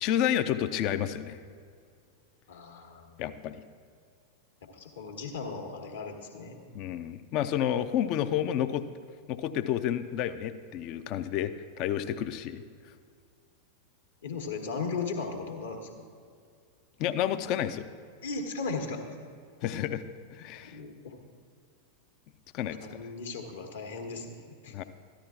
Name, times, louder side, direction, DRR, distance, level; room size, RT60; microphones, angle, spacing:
voice 1, 0.0-1.4 3.2-3.6 6.7-8.8 9.3-12.6 17.0-17.9 19.6-20.0 20.3-20.8 22.5-23.0 24.7-24.8, left 10 dB, 40° left, 11 dB, 0.4 m, -30 dB
voice 2, 2.5-3.4 4.6-6.6 14.2-15.9 18.2-19.0 20.7-21.2 22.7-24.7, left 4 dB, 65° left, 3 dB, 1.2 m, -37 dB
14.0 x 11.5 x 2.4 m, 2.2 s
figure-of-eight pair, 90°, 0 cm